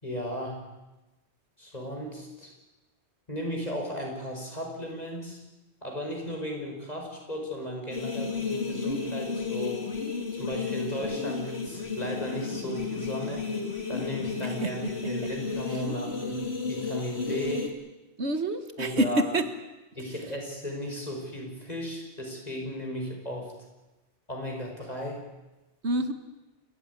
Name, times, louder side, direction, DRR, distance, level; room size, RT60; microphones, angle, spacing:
voice 1, 0.0-0.6 1.6-2.5 3.3-5.4 5.8-9.8 10.3-13.5 13.9-17.7 18.8-19.3 19.9-23.5 24.3-25.2, equal, 40° left, 1 dB, 6.0 m, -35 dB
sound 1, 7.9-17.7, left 4 dB, 70° left, 3.1 m, -33 dB
voice 2, 14.6-14.9 18.2-19.4 25.8-26.1, right 1 dB, 85° right, 10 dB, 2.0 m, -27 dB
29.0 x 15.0 x 9.7 m, 1.1 s
omnidirectional pair, 1.1 m